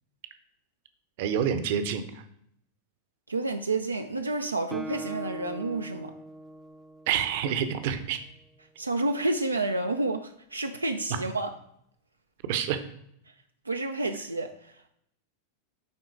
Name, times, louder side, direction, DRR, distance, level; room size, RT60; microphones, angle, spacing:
voice 1, 1.2-2.2 7.1-8.2 11.1-11.2 12.5-12.8, right 8 dB, 50° right, 10 dB, 0.8 m, -28 dB
voice 2, 3.3-6.1 8.8-11.5 13.6-14.9, right 2 dB, 80° right, 6 dB, 0.5 m, -30 dB
Guitar, 4.7-8.4, right 1 dB, 15° right, 0.6 m, -42 dB
9.6 x 3.9 x 4.7 m, 0.74 s
figure-of-eight pair, 90°, 0 cm